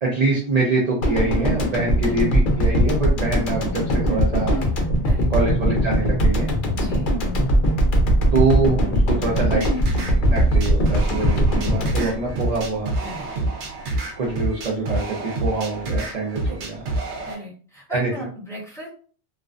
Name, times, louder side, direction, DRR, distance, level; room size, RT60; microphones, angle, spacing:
voice 1, 0.0-4.6 5.3-6.5 8.3-9.7 10.3-12.9 14.2-16.8 17.9-18.1, right 3 dB, 45° right, -4 dB, 0.6 m, -24 dB
sound 1, 1.0-13.2 13.5-13.6, equal, 60° left, 0.7 m, -20 dB
voice 2, 5.0-5.5 6.7-7.1 13.0-13.3 16.4-16.6 17.3-18.9, right 1 dB, 5° left, -5 dB, 0.8 m, -37 dB
sound 2, 9.3-17.3, right 2 dB, 90° right, 0.9 m, -28 dB
2.4 x 2.1 x 2.4 m, 0.42 s
omnidirectional pair, 1.1 m